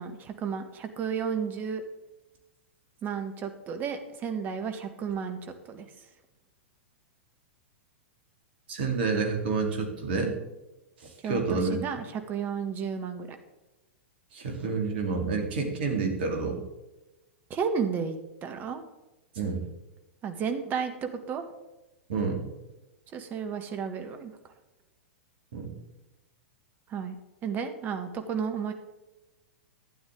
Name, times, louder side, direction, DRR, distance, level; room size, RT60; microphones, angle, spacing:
voice 1, 0.0-1.8 3.0-5.9 11.2-13.3 17.5-18.8 20.2-21.4 23.1-24.3 26.9-27.2 27.4-28.7, right 6 dB, 30° right, 7 dB, 1.5 m, -32 dB
voice 2, 8.7-10.3 11.0-11.8 14.3-16.6 19.3-19.7 22.1-22.4 25.5-25.7, right 4 dB, 55° right, 3 dB, 2.7 m, -29 dB
12.5 x 9.7 x 3.7 m, 1.0 s
figure-of-eight pair, 100°, 7 cm